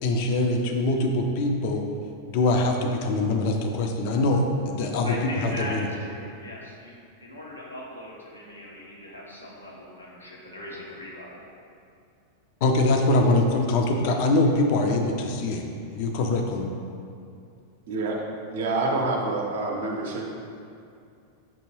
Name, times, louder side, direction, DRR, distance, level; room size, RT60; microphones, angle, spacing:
voice 1, 0.0-1.8 2.3-5.9 12.6-15.6 15.9-16.8, left 2 dB, 50° left, 3 dB, 0.4 m, -23 dB
voice 2, 5.0-7.0 7.2-11.4, left 1 dB, 85° left, -4 dB, 0.7 m, -39 dB
voice 3, 17.9-18.2 18.5-20.2, right 2 dB, 60° right, 0 dB, 0.6 m, -27 dB
5.4 x 2.9 x 3.0 m, 2.5 s
figure-of-eight pair, 90°, 0 cm